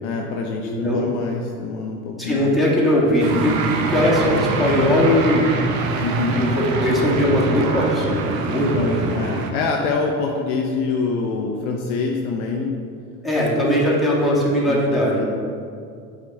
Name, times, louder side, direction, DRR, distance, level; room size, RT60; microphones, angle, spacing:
voice 1, 0.0-2.6 6.0-6.4 8.7-12.8 14.7-15.3, left 4 dB, 50° left, 1 dB, 0.7 m, -25 dB
voice 2, 0.6-1.0 2.2-3.5 3.8-5.5 6.3-9.2 13.2-15.3, left 1 dB, ahead, -6 dB, 1.7 m, -20 dB
sound 1, 3.2-9.5, right 3 dB, 55° right, 0.9 m, -24 dB
8.4 x 3.8 x 4.5 m, 2.3 s
figure-of-eight pair, 75°, 47 cm